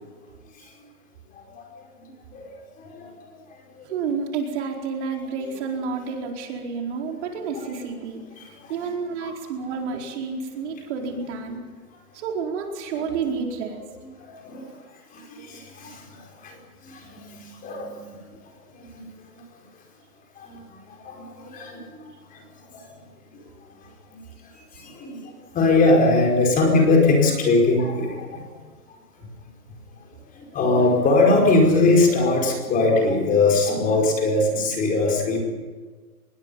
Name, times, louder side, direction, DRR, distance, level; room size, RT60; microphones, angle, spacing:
voice 1, 2.8-3.1 3.8-3.9 8.4-8.7 9.2-9.3 14.3-14.7 15.1-16.6 16.8-18.1 18.9-19.1 20.4-20.6 21.0-22.0 22.3-22.4 22.7-22.9 24.1-24.2 24.7-28.4 30.4-35.4, left 3 dB, 15° left, 0 dB, 5.1 m, -21 dB
voice 2, 3.8-11.6 12.1-13.8, right 5 dB, 45° right, 1 dB, 4.6 m, -30 dB
25.5 x 22.0 x 5.7 m, 1.4 s
hypercardioid pair, 150°, 47 cm